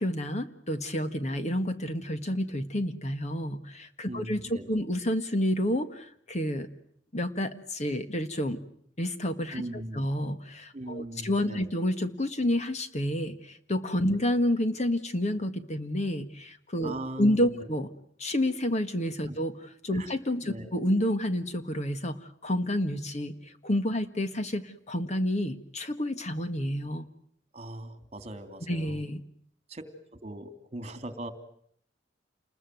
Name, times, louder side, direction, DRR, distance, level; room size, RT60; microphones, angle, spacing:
voice 1, 0.0-6.7 7.1-8.6 9.0-9.6 9.9-17.9 18.2-27.1 28.7-29.2, left 1 dB, 40° left, 9 dB, 1.7 m, -29 dB
voice 2, 4.1-4.8 9.5-10.0 10.7-11.7 14.0-14.2 16.8-17.7 19.3-19.4 19.9-20.1 20.4-20.7 27.5-29.0 29.7-29.8 30.1-31.3, right 1 dB, 35° right, 11 dB, 2.9 m, -40 dB
29.0 x 21.5 x 9.3 m, 0.68 s
head